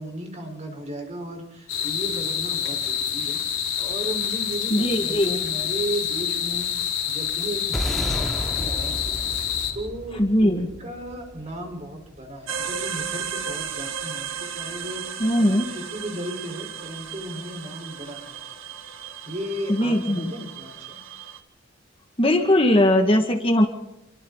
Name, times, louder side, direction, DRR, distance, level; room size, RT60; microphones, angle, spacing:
voice 1, 0.0-3.4 3.8-6.7 7.1-9.0 9.4-9.5 9.7-18.6 19.3-21.0, right 1 dB, 35° right, 3 dB, 4.8 m, -35 dB
sound 1, 1.7-9.7, left 8 dB, 80° left, 4.1 m, -27 dB
voice 2, 4.7-5.4 10.2-10.7 15.2-15.7 19.7-20.3 22.2-23.6, left 1 dB, 30° left, 4 dB, 2.1 m, -20 dB
sound 2, 7.7-12.2, equal, ahead, 2.6 m, -32 dB
sound 3, 12.5-21.4, right 7 dB, 80° right, 1.7 m, -35 dB
28.5 x 23.5 x 4.1 m, 0.87 s
head